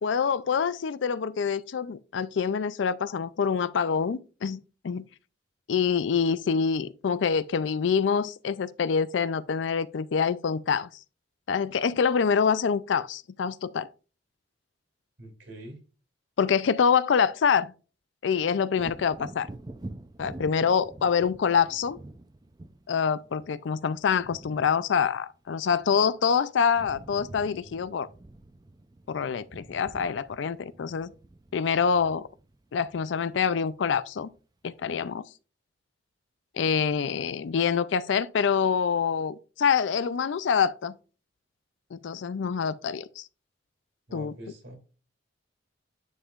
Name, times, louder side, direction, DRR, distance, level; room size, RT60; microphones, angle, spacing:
voice 1, 0.0-5.1 5.7-10.9 11.5-13.9 16.4-17.7 18.2-19.5 20.2-22.0 22.9-28.1 29.1-31.1 31.5-32.3 32.7-34.3 34.6-35.2 36.5-41.0 41.9-43.3 44.1-44.3, left 6 dB, 70° left, 0.4 m, -26 dB
voice 2, 15.2-15.8 44.1-44.8, equal, 70° right, 3.1 m, -43 dB
Wind / Thunder, 18.7-26.3 26.6-33.8 34.2-34.4, right 2 dB, 20° right, 0.5 m, -47 dB
9.6 x 5.5 x 2.4 m
head